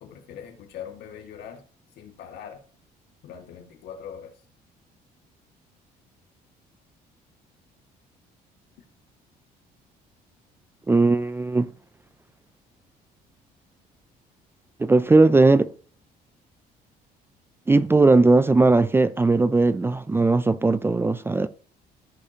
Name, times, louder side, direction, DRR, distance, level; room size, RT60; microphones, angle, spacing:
voice 1, 0.0-1.6 2.0-2.6 3.2-4.4, left 8 dB, 80° left, 1.8 m, -41 dB
voice 2, 10.9-11.7 14.8-15.7 17.7-21.5, right 3 dB, 15° right, 0.4 m, -18 dB
14.5 x 5.4 x 2.8 m
cardioid pair, 110°, 17 cm